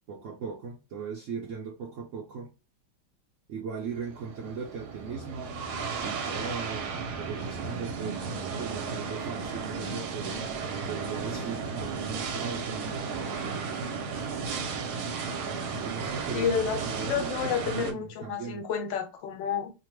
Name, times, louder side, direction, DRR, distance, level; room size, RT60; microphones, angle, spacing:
voice 1, 0.1-2.5 3.5-5.6 6.0-10.4 10.9-12.9 15.8-16.5 16.8-18.6, right 6 dB, 85° right, 0.6 m, -38 dB
sound 1, 3.9-17.9, right 5 dB, 70° right, 1.0 m, -34 dB
voice 2, 16.3-19.7, left 7 dB, 90° left, 1.3 m, -30 dB
2.8 x 2.1 x 3.0 m
omnidirectional pair, 1.9 m